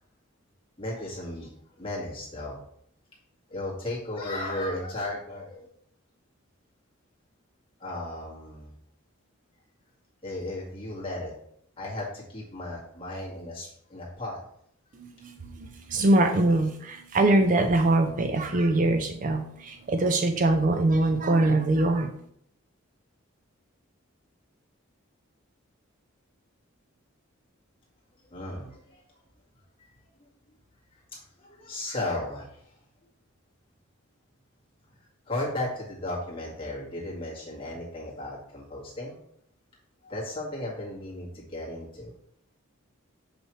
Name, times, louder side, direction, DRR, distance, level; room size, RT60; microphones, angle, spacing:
voice 1, 0.8-1.5 1.8-2.6 3.5-5.7 7.8-8.7 10.2-11.3 11.8-14.4 28.3-29.0 31.4-32.5 35.3-39.1 40.0-42.1, left 1 dB, 25° left, -5 dB, 1.8 m, -35 dB
voice 2, 15.0-22.2, right 2 dB, 40° right, 5 dB, 0.4 m, -23 dB
6.0 x 5.4 x 3.2 m, 0.70 s
head